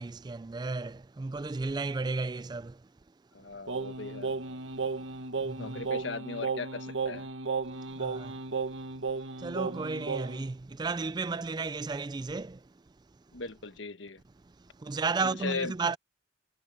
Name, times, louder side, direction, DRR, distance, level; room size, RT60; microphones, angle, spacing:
voice 1, 0.0-2.8 5.4-5.8 7.9-8.4 9.4-12.6 14.8-16.0, right 4 dB, 20° right, 0.3 m, -33 dB
voice 2, 3.3-4.3 5.6-7.3 13.3-14.2 15.2-15.7, left 4 dB, 75° left, 1.2 m, -38 dB
Singing, 3.7-10.5, right 4 dB, 85° right, 1.7 m, -34 dB
head